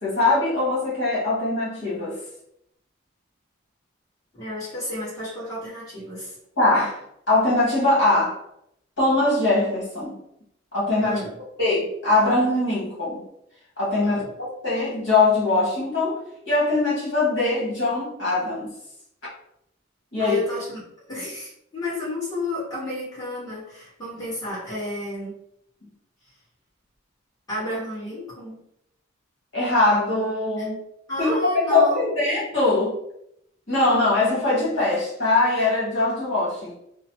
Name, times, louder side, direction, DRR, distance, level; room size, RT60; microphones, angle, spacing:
voice 1, 0.0-2.2 6.6-7.0 7.3-8.4 9.0-10.2 10.7-11.2 11.6-13.2 13.8-16.2 16.4-18.7 20.1-20.4 29.5-30.8 31.2-32.9 33.7-36.8, left 2 dB, 60° left, -8 dB, 1.3 m, -22 dB
voice 2, 4.3-6.3 11.0-11.4 14.0-14.3 20.2-25.3 27.5-28.6 30.6-30.7 31.1-32.1, left 1 dB, 20° left, -11 dB, 1.5 m, -32 dB
3.0 x 2.1 x 2.9 m, 0.75 s
head